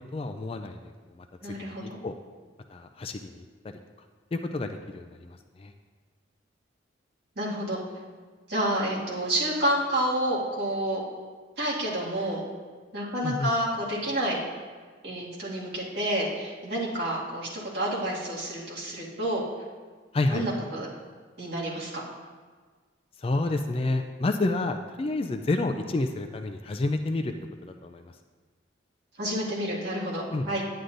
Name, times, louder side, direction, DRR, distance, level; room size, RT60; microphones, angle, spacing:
voice 1, 0.1-2.1 2.7-3.4 4.3-5.7 13.2-13.5 20.1-20.4 23.2-27.3 27.6-28.1 30.3-30.5, left 2 dB, 30° left, 6 dB, 0.3 m, -30 dB
voice 2, 1.4-2.0 7.4-7.8 8.5-11.0 11.6-12.4 12.9-14.4 15.0-19.4 20.3-20.9 21.4-21.9 29.2-30.6, right 1 dB, 55° right, -6 dB, 2.0 m, -29 dB
9.9 x 9.3 x 2.6 m, 1.5 s
head